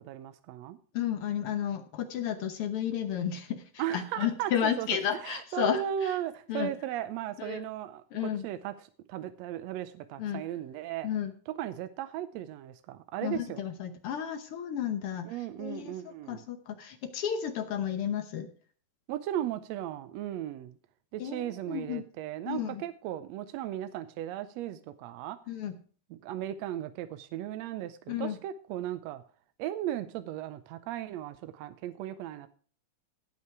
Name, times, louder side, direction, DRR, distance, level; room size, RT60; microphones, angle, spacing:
voice 1, 0.0-0.8 3.8-11.1 11.5-13.6 15.2-16.4 19.1-20.8 21.1-25.4 26.1-29.2 29.6-32.5, right 11 dB, 80° right, 12 dB, 1.5 m, -36 dB
voice 2, 0.9-3.6 3.9-6.1 6.5-6.7 7.4-7.6 8.1-8.4 10.2-10.4 11.0-11.3 13.2-15.2 15.6-18.5 21.2-22.0 22.5-22.8 25.5-25.7 28.1-28.4, left 9 dB, 70° left, 8 dB, 1.3 m, -32 dB
17.0 x 5.8 x 4.7 m, 0.43 s
omnidirectional pair, 3.7 m